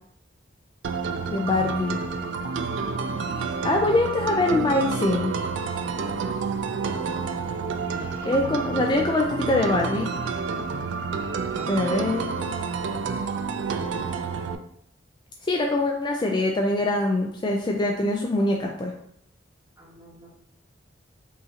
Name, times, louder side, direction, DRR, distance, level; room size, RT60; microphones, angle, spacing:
sound 1, 0.8-14.6, right 5 dB, 75° right, 0.3 m, -29 dB
voice 1, 1.3-2.0 3.6-5.3 8.2-10.1 11.7-12.3 15.5-18.9, left 2 dB, 25° left, 1 dB, 0.3 m, -23 dB
voice 2, 6.2-6.8 7.8-8.3 11.5-12.1 19.8-20.3, right 1 dB, 15° right, -5 dB, 1.2 m, -47 dB
5.5 x 2.6 x 2.8 m, 0.71 s
head